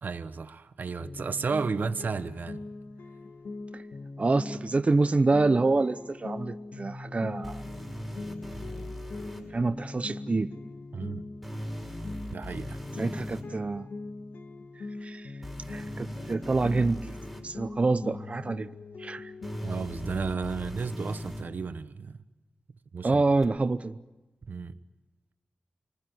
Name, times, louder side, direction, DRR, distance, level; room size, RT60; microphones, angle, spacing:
voice 1, 0.0-2.6 10.9-11.3 12.3-12.8 19.5-22.2 22.9-23.2 24.5-24.8, right 5 dB, 70° right, 1.1 m, -33 dB
sound 1, 1.0-20.4, left 3 dB, 90° left, 2.1 m, -41 dB
voice 2, 4.2-7.6 9.4-10.5 13.0-13.9 15.0-15.3 15.7-17.1 17.4-18.7 19.0-19.3 23.0-24.0, right 3 dB, 40° right, 0.8 m, -27 dB
sound 2, 7.4-9.4 11.4-13.4 15.4-17.4 19.4-21.4 23.4-23.5, equal, ahead, 6.1 m, -39 dB
28.5 x 20.0 x 9.4 m
cardioid pair, 60°, 3 cm